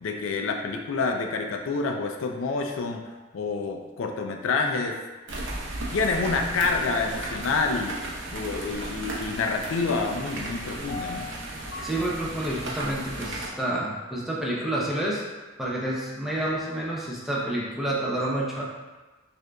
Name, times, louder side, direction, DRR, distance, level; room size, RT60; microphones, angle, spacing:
voice 1, 0.0-3.0 3.3-5.0 5.9-8.0 8.3-11.3, left 4 dB, 85° left, 3 dB, 0.4 m, -27 dB
sound 1, 5.3-13.5, right 1 dB, 65° right, 0.8 m, -35 dB
Piano, 10.9-13.9 14.4-14.5, left 4 dB, 65° left, 0.8 m, -42 dB
voice 2, 11.8-15.2 15.6-18.6, right 1 dB, ahead, -5 dB, 0.5 m, -29 dB
6.3 x 2.6 x 2.2 m, 1.2 s
head